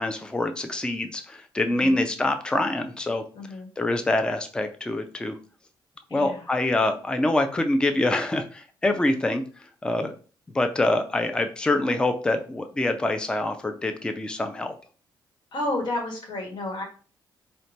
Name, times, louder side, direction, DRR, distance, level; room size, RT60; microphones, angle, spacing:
voice 1, 0.0-3.2 3.8-5.4 6.1-9.4 9.8-10.1 10.5-14.7, left 2 dB, 10° left, 7 dB, 0.4 m, -25 dB
voice 2, 1.6-2.0 3.3-3.7 6.1-6.5 15.5-16.8, left 2 dB, 70° left, 2 dB, 1.2 m, -31 dB
4.1 x 2.2 x 2.7 m, 0.38 s
cardioid pair, 100°, 8 cm